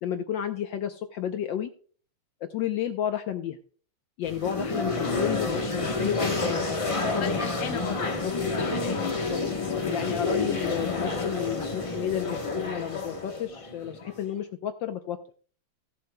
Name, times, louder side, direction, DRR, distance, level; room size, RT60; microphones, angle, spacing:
voice 1, 0.0-1.7 2.5-3.6 4.2-6.8 9.1-9.4 9.9-15.2, left 9 dB, 70° left, 1.3 m, -32 dB
sound 1, 4.2-14.3, left 3 dB, 30° left, 0.6 m, -29 dB
voice 2, 5.0-5.4 7.0-9.3 9.7-9.9, left 8 dB, 45° left, 1.1 m, -39 dB
Wind instrument woodwind instrument, 8.9-13.5, left 4 dB, 15° right, 4.7 m, -42 dB
16.5 x 7.6 x 2.2 m
omnidirectional pair, 2.4 m